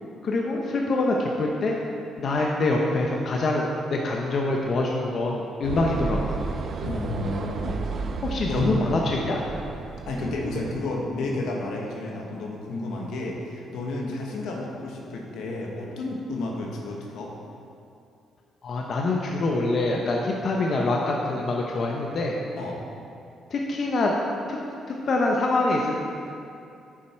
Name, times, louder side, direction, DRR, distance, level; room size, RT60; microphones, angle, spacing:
voice 1, 0.2-1.8 2.2-6.4 8.2-9.4 18.6-22.4 23.5-24.1 24.5-24.6 24.9-26.1, left 2 dB, 55° left, -1 dB, 0.9 m, -25 dB
sound 1, 5.6-10.7, right 4 dB, 50° right, 0.6 m, -32 dB
voice 2, 6.8-7.8 8.4-9.0 10.1-17.3 22.6-22.8, left 2 dB, 80° left, -1 dB, 1.5 m, -31 dB
9.5 x 7.5 x 4.5 m, 2.6 s
cardioid pair, 90°, 0 cm